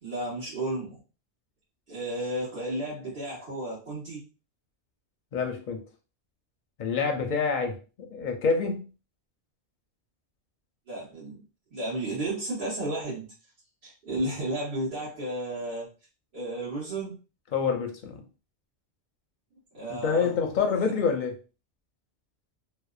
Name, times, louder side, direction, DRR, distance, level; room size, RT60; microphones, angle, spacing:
voice 1, 0.0-1.0 1.9-4.2 10.9-11.4 11.7-13.3 13.8-15.9 16.3-17.1 19.7-20.6, right 1 dB, 55° right, 1.3 m, -33 dB
voice 2, 5.3-5.8 6.8-8.8 17.5-18.2 19.9-21.3, left 5 dB, 55° left, 0.6 m, -27 dB
2.8 x 2.0 x 2.3 m
omnidirectional pair, 1.1 m